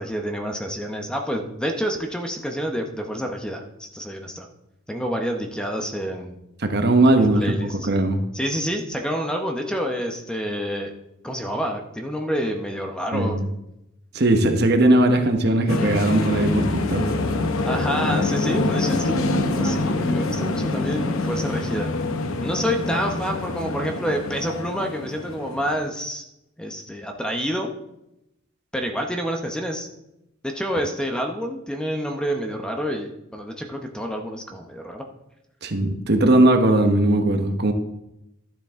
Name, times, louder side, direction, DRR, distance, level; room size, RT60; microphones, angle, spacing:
voice 1, 0.0-4.5 4.9-6.4 7.1-7.9 8.3-10.9 11.2-13.4 17.6-19.1 19.5-21.9 22.4-26.3 26.6-27.7 28.7-29.9 30.4-35.0, equal, 5° left, 3 dB, 0.8 m, -28 dB
voice 2, 6.6-8.2 13.1-13.4 14.1-17.1 35.6-37.7, right 1 dB, 50° right, 6 dB, 1.0 m, -19 dB
sound 1, 15.7-25.8, left 2 dB, 80° left, 0.8 m, -25 dB
12.0 x 7.4 x 3.6 m, 0.86 s
head